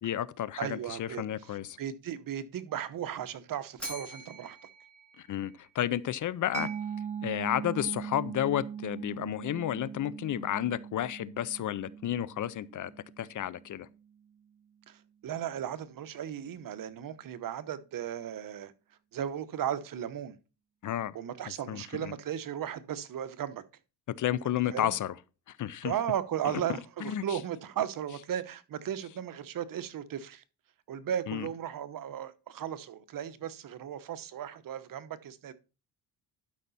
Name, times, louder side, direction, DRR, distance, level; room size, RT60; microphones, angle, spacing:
voice 1, 0.0-1.8 5.2-6.7 7.2-12.9 13.2-13.9 20.8-21.2 21.7-22.1 24.2-25.1 25.5-25.9 26.4-26.6 27.0-27.4 31.3-31.5, left 11 dB, 50° left, 0.6 m, -32 dB
voice 2, 0.6-4.6 14.9-18.7 19.1-20.4 21.1-23.6 24.7-24.9 25.8-30.4 30.9-35.5, right 10 dB, 55° right, 1.0 m, -36 dB
Bell, 3.8-6.0, equal, 5° left, 3.7 m, -45 dB
Mallet percussion, 6.5-13.9, right 7 dB, 20° right, 0.6 m, -40 dB
12.0 x 5.8 x 4.1 m
cardioid pair, 110°, 40 cm